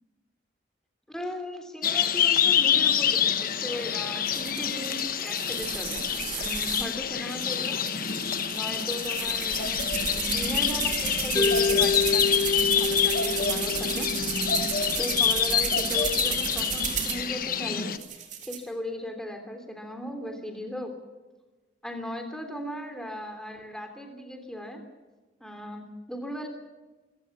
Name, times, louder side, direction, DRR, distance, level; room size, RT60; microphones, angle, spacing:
voice 1, 1.1-6.1 6.4-7.8 8.5-14.1 15.0-20.9 21.8-24.8 25.4-26.5, left 1 dB, 5° left, 4 dB, 3.2 m, -37 dB
sound 1, 1.8-18.0, left 8 dB, 50° left, 1.2 m, -27 dB
sound 2, 4.2-6.9 7.3-17.2 17.9-18.6, right 8 dB, 40° right, 3.8 m, -33 dB
Mallet percussion, 11.4-15.5, left 4 dB, 20° left, 1.4 m, -29 dB
26.5 x 17.0 x 7.3 m, 1.2 s
head